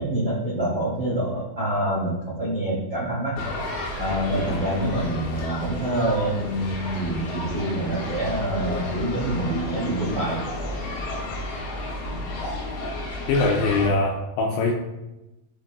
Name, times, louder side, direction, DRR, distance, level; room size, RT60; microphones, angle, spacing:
voice 1, 0.0-3.4 4.0-10.5, right 1 dB, 70° right, -6 dB, 1.0 m, -26 dB
sound 1, 3.4-13.9, left 2 dB, 65° left, 3.6 m, -32 dB
voice 2, 13.3-14.7, left 3 dB, 90° left, 0 dB, 2.5 m, -22 dB
15.5 x 5.3 x 2.3 m, 0.98 s
omnidirectional pair, 5.7 m